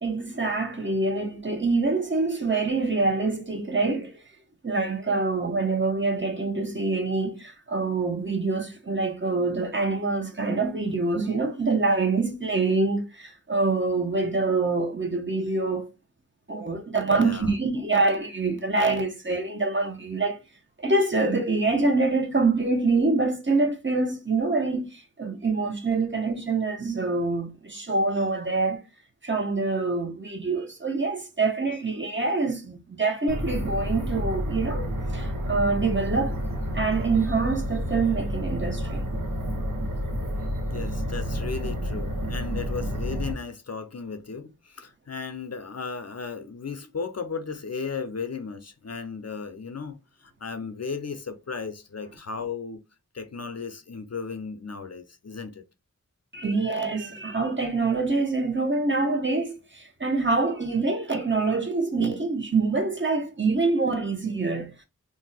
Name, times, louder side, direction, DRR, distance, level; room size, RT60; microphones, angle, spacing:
voice 1, 0.0-4.2 4.6-15.9 16.5-20.4 20.8-28.8 29.2-34.9 35.1-36.4 36.7-39.1 56.3-64.7, right 3 dB, 35° right, 0.8 m, -25 dB
voice 2, 17.2-17.5 40.7-52.8 53.1-55.6, left 5 dB, 50° left, 0.5 m, -35 dB
sound 1, 33.3-43.3, equal, 80° right, 0.8 m, -30 dB
2.6 x 2.1 x 3.9 m
wide cardioid pair, 55°, 32 cm